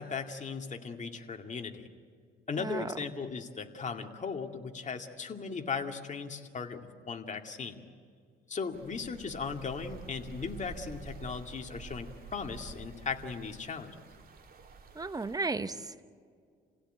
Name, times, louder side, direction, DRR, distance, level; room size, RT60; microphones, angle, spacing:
voice 1, 0.0-1.9 2.5-7.8 8.5-14.0, left 5 dB, 40° left, 4 dB, 2.3 m, -37 dB
sound 1, 8.7-15.4, right 4 dB, 50° right, 2.8 m, -49 dB
voice 2, 14.9-16.0, right 3 dB, 20° right, 11 dB, 1.1 m, -34 dB
28.5 x 16.5 x 9.2 m, 2.1 s
cardioid pair, 90°, 20 cm